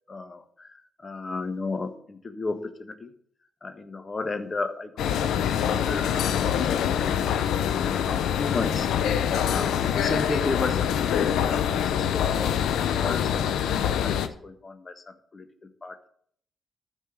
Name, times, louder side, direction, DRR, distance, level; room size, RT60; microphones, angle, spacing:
voice 1, 0.1-3.1 3.6-7.2 7.7-8.9 9.3-16.1, left 3 dB, 35° left, 7 dB, 1.5 m, -35 dB
sound 1, 5.0-14.3, left 9 dB, 75° left, 0.7 m, -25 dB
11.5 x 4.6 x 7.7 m, 0.63 s
hypercardioid pair, 45°, 0 cm